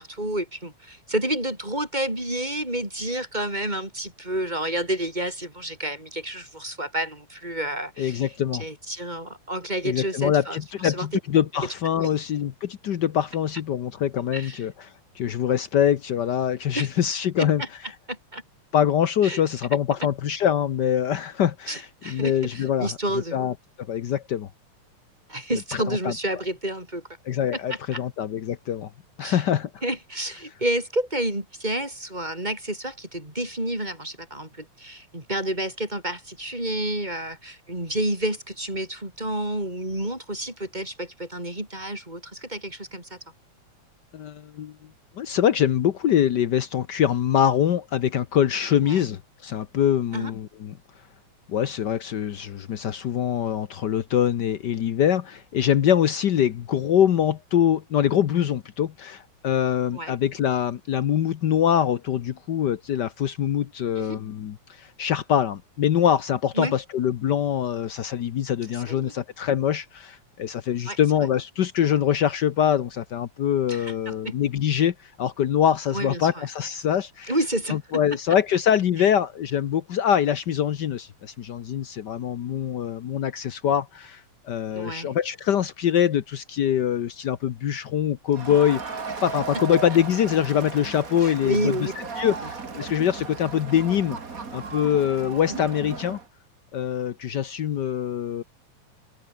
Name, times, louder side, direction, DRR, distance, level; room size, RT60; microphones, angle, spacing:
voice 1, 0.0-8.3 8.6-11.1 12.0-12.1 14.3-14.6 16.7-16.9 17.4-17.7 18.1-18.4 19.2-19.4 21.7-23.4 25.3-27.0 27.7-28.0 29.2-29.4 29.8-43.2 48.8-49.0 50.1-50.3 59.9-60.1 64.0-64.2 66.6-66.7 68.7-69.1 70.8-71.0 73.7-74.3 75.9-76.5 77.3-78.0 79.0-79.1 84.7-85.1 91.2-91.9 95.5-95.6, right 1 dB, 15° right, 6.2 m, -30 dB
voice 2, 8.0-8.6 9.8-14.7 15.1-17.6 18.7-22.9 23.3-24.5 25.7-26.1 27.3-28.9 29.2-29.7 44.1-44.7 45.2-50.8 51.5-77.3 77.7-94.2 94.5-96.2 96.7-98.4, left 9 dB, 90° left, 0.9 m, -24 dB
Crowd, 88.3-96.3, right 4 dB, 30° right, 2.5 m, -36 dB
open air
omnidirectional pair, 3.3 m